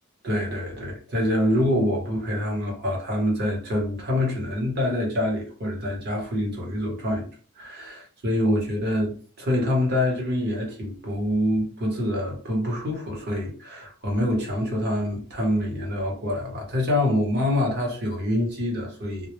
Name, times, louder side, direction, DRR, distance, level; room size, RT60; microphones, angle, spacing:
voice 1, 0.2-7.2 7.6-19.3, left 1 dB, 45° right, 0.8 m, -26 dB
2.1 x 2.1 x 2.9 m
head